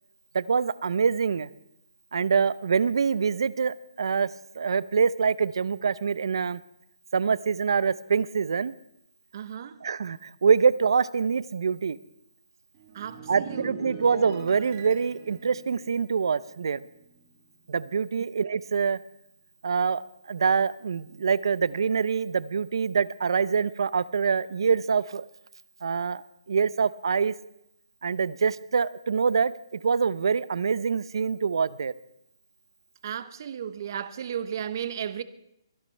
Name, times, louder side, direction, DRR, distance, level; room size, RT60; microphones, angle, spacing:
voice 1, 0.3-1.5 2.1-4.3 4.6-6.6 7.1-8.7 9.8-12.0 13.3-16.8 17.7-19.0 19.6-20.0 20.3-25.2 25.8-27.3 28.0-31.9, right 6 dB, 75° right, 0.6 m, -25 dB
voice 2, 9.3-9.8 12.9-14.0 33.0-35.2, right 9 dB, 45° right, 0.8 m, -34 dB
sound 1, 12.7-17.4 17.6-18.0, right 4 dB, 30° right, 2.6 m, -43 dB
22.5 x 11.5 x 3.3 m
hypercardioid pair, 165°, 3 cm